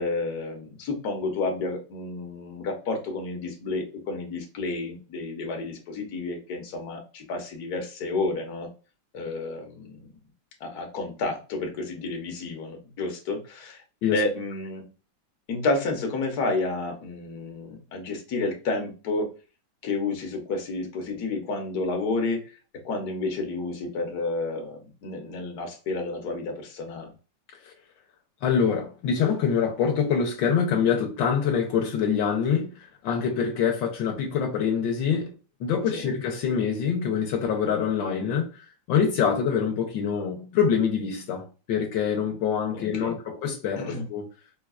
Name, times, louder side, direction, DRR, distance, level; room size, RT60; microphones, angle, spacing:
voice 1, 0.0-8.7 9.1-10.1 10.6-13.8 14.1-14.8 15.5-19.3 19.8-22.6 22.8-27.1 35.9-36.1 42.7-43.1 43.8-44.0, left 3 dB, 60° left, 1.2 m, -30 dB
voice 2, 28.4-35.3 35.6-44.3, left 7 dB, 75° left, 1.4 m, -25 dB
4.7 x 2.3 x 2.3 m
omnidirectional pair, 2.1 m